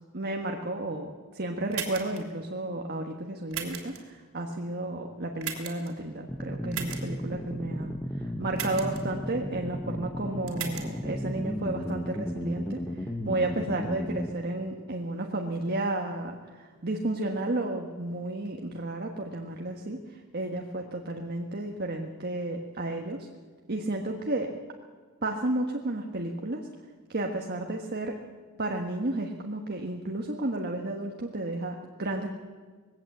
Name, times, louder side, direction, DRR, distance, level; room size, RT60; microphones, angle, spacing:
voice 1, 0.1-23.3 23.7-24.5 25.2-26.7 27.1-28.2 28.6-32.3, right 2 dB, 45° right, 2 dB, 1.4 m, -32 dB
sound 1, 1.7-2.2 3.5-4.0 5.4-5.9 6.7-7.0 8.5-9.0 10.5-10.8, right 8 dB, 70° right, 3.1 m, -35 dB
sound 2, 6.3-14.3, equal, 10° left, 1.1 m, -34 dB
20.5 x 16.5 x 7.9 m, 1.5 s
head